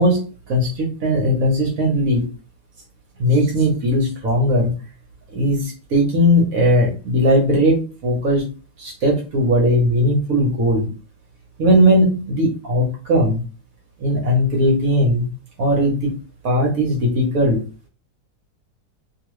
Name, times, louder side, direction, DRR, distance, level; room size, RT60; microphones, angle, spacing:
voice 1, 0.0-2.3 3.2-4.7 5.3-8.5 8.8-10.9 11.6-13.4 14.0-15.3 15.6-16.1 16.4-17.6, equal, 55° right, -2 dB, 1.1 m, -18 dB
2.9 x 2.7 x 3.0 m, 0.35 s
omnidirectional pair, 2.1 m